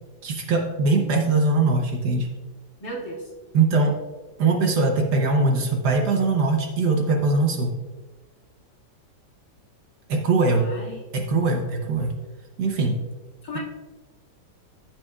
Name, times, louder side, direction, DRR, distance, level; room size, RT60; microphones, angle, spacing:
voice 1, 0.2-2.3 3.5-4.0 4.4-7.7 10.1-10.7 11.1-12.1 12.6-13.0, right 3 dB, 65° right, 3 dB, 1.3 m, -21 dB
voice 2, 2.8-3.3 10.5-11.0 13.4-13.6, equal, 55° left, -6 dB, 2.7 m, -35 dB
14.5 x 5.9 x 2.4 m, 1.3 s
omnidirectional pair, 2.1 m